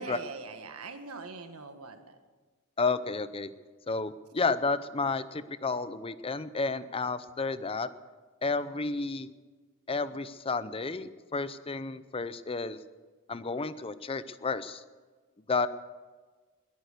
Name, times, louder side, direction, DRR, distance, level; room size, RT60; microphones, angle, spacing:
voice 1, 0.0-2.2, right 3 dB, 75° right, 7 dB, 1.5 m, -42 dB
voice 2, 2.8-3.5 3.9-7.9 8.4-9.3 9.9-12.8 13.3-14.8 15.5-15.7, left 4 dB, 25° left, 14 dB, 0.6 m, -31 dB
21.0 x 9.2 x 6.7 m, 1.4 s
head